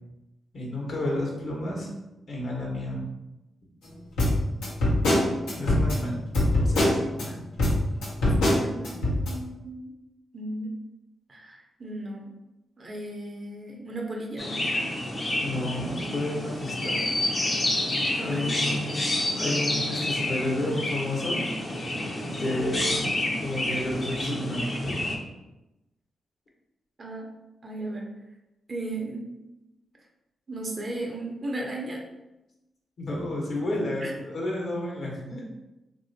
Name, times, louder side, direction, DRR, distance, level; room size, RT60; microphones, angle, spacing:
voice 1, 0.5-1.9 2.3-3.0 5.6-6.2 6.6-7.4 15.4-16.9 18.2-19.0 19.4-21.4 22.4-25.2 33.0-35.4, left 1 dB, 65° left, -3 dB, 1.1 m, -31 dB
sound 1, 4.2-7.3 7.6-9.3, left 1 dB, 85° left, 0.8 m, -23 dB
voice 2, 8.4-9.9 10.3-10.7 11.3-12.4 12.8-14.5 18.2-18.7 27.0-27.3 27.6-28.2 28.7-29.3 30.0-30.1 30.5-32.0 34.0-34.1, right 2 dB, 45° right, 0 dB, 0.8 m, -36 dB
Chirp tweet, 14.4-25.2, left 1 dB, 45° left, 0.7 m, -29 dB
3.1 x 2.7 x 2.7 m, 0.97 s
supercardioid pair, 45°, 0 cm